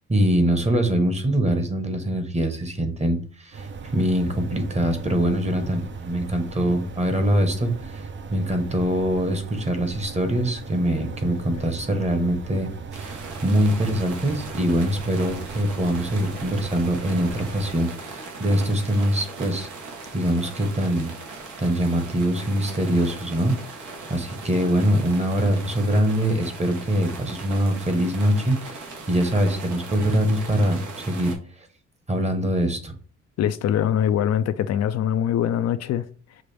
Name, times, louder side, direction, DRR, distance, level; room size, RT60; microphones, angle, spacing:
voice 1, 0.1-19.7 20.1-21.1 21.6-31.4 32.1-32.9, equal, 20° right, 1.1 m, -23 dB
sound 1, 3.5-17.7, right 4 dB, 40° right, 0.6 m, -37 dB
sound 2, 12.9-31.3, right 3 dB, 80° right, 1.4 m, -39 dB
voice 2, 33.4-36.0, left 10 dB, 60° left, 0.4 m, -23 dB
6.2 x 2.5 x 3.3 m
cardioid pair, 90°, 30 cm